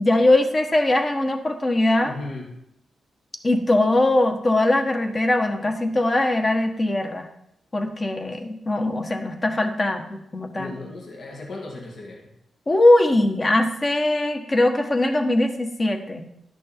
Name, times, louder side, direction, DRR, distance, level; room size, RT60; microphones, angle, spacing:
voice 1, 0.0-2.1 3.4-7.3 7.7-10.0 10.3-10.8 12.7-16.3, left 1 dB, 30° left, 5 dB, 1.2 m, -21 dB
voice 2, 2.0-2.5 9.8-9.9 10.6-12.3, left 2 dB, 65° left, -1 dB, 2.2 m, -36 dB
11.5 x 6.3 x 4.5 m, 0.80 s
cardioid pair, 90°, 0 cm